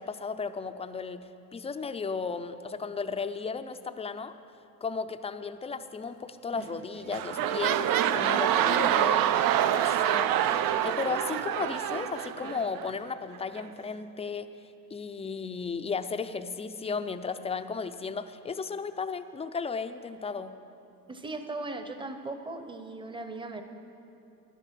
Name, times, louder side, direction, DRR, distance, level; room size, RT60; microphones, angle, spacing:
voice 1, 0.0-4.3 4.8-9.2 9.8-14.5 14.9-20.5, left 5 dB, 20° left, 10 dB, 0.4 m, -35 dB
sound 1, 6.5-6.8 7.1-12.9 13.6-13.7, right 10 dB, 75° right, 0.6 m, -26 dB
voice 2, 21.1-23.6, right 2 dB, 15° right, 7 dB, 0.7 m, -38 dB
12.5 x 11.5 x 5.9 m, 2.7 s
cardioid pair, 150°, 34 cm